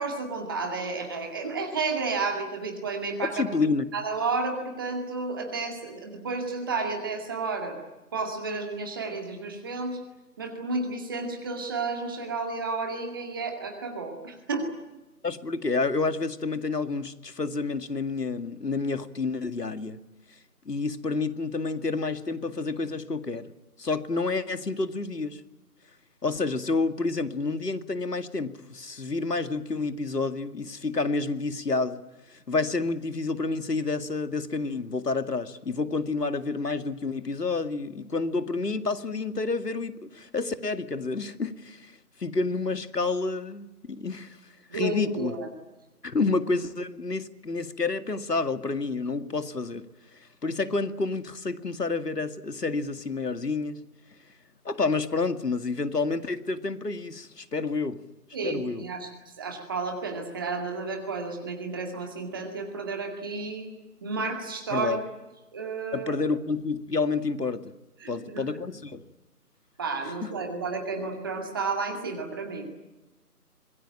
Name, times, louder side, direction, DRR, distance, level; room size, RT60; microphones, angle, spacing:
voice 1, 0.0-3.5 3.9-7.8 8.1-10.0 10.4-14.7 44.7-45.5 58.3-63.7 64.0-65.0 65.5-66.2 68.0-68.4 69.8-72.7, right 4 dB, 15° right, 2.2 m, -32 dB
voice 2, 3.2-3.9 15.2-20.0 20.7-23.5 23.8-25.4 26.2-32.0 32.3-41.9 42.2-44.4 44.7-45.3 46.0-49.9 50.1-53.8 54.6-58.0 58.4-58.8 64.7-65.0 65.9-67.7 68.1-69.1 70.2-70.3, left 3 dB, 80° left, 2.2 m, -29 dB
25.5 x 21.5 x 8.9 m
figure-of-eight pair, 165°, 47 cm